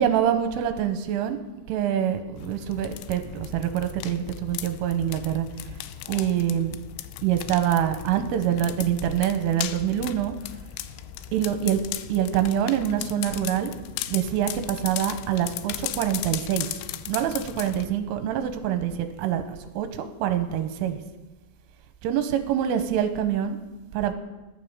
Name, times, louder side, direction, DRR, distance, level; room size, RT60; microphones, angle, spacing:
voice 1, 0.0-1.4 1.7-5.5 6.1-6.8 7.2-10.3 11.3-11.8 12.1-13.7 14.1-16.7 17.1-21.0 22.0-23.6 23.9-24.1, right 10 dB, 80° right, 8 dB, 3.4 m, -25 dB
sound 1, 2.4-17.9, left 13 dB, 85° left, 2.6 m, -37 dB
20.5 x 11.5 x 3.7 m, 1.1 s
omnidirectional pair, 5.9 m